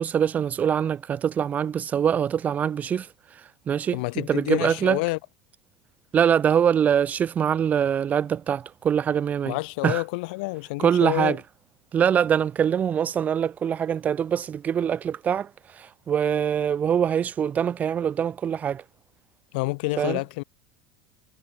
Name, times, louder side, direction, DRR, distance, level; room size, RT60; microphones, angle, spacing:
voice 1, 0.0-3.1 3.7-5.0 6.1-9.6 9.8-10.0 10.8-11.4 11.9-18.8 20.0-20.2, right 8 dB, 30° right, 1.7 m, -24 dB
voice 2, 3.9-5.2 9.5-11.4 19.5-20.4, left 26 dB, 70° left, 2.0 m, -28 dB
supercardioid pair, 120°, 5 cm